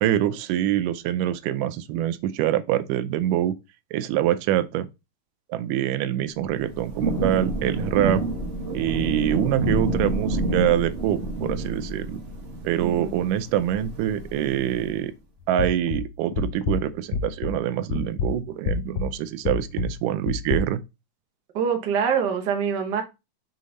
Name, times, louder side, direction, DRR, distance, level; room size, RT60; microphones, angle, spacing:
voice 1, 0.0-3.5 3.9-4.9 5.5-8.2 8.7-12.2 12.6-15.1 15.5-20.8, right 12 dB, 85° right, 2.2 m, -25 dB
Thunder / Rain, 6.4-15.0, right 2 dB, 40° right, 0.8 m, -29 dB
voice 2, 12.8-13.2 21.5-23.0, right 7 dB, 65° right, 1.0 m, -25 dB
sound 1, 15.6-17.6 17.9-20.6, left 5 dB, 75° left, 1.3 m, -28 dB
6.6 x 3.7 x 3.9 m
omnidirectional pair, 3.7 m